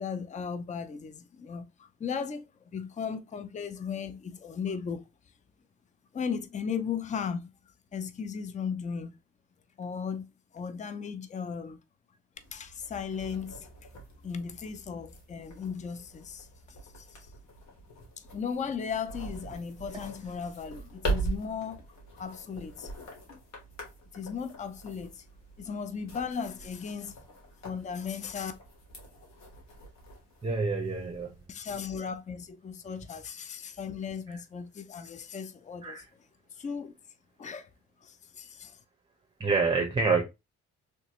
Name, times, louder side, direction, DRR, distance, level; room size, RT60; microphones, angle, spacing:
voice 1, 0.0-2.5 2.7-5.0 6.1-7.5 7.9-9.1 9.8-10.3 10.5-11.8 12.5-13.7 14.2-17.2 18.2-21.8 22.2-22.9 24.1-25.2 25.6-27.2 27.6-28.5 31.5-36.0 36.5-36.9 37.4-37.7 38.0-38.8, left 6 dB, 25° left, 0.5 m, -36 dB
sound 1, 12.3-31.5, right 2 dB, 65° left, 1.7 m, -42 dB
voice 2, 30.4-31.3 34.3-34.4 35.8-36.0 39.4-40.2, right 4 dB, 15° right, 1.0 m, -27 dB
3.3 x 2.9 x 2.9 m
cardioid pair, 90°, 30 cm